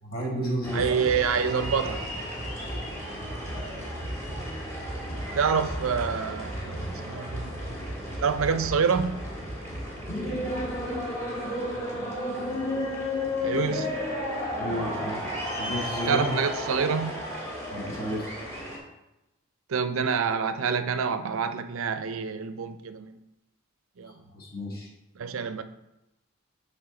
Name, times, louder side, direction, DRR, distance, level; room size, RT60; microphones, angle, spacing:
voice 1, 0.0-0.9 14.6-15.2 15.6-16.3 17.7-18.3 24.0-24.9, equal, 45° left, -2 dB, 1.6 m, -32 dB
sound 1, 0.6-18.8, equal, 10° left, 1.5 m, -33 dB
voice 2, 0.7-2.0 5.3-7.8 8.2-9.2 13.4-14.0 16.1-17.1 19.7-23.2 24.0-24.1 25.2-25.6, right 6 dB, 70° right, 10 dB, 0.5 m, -27 dB
10.5 x 3.6 x 3.8 m, 0.92 s
head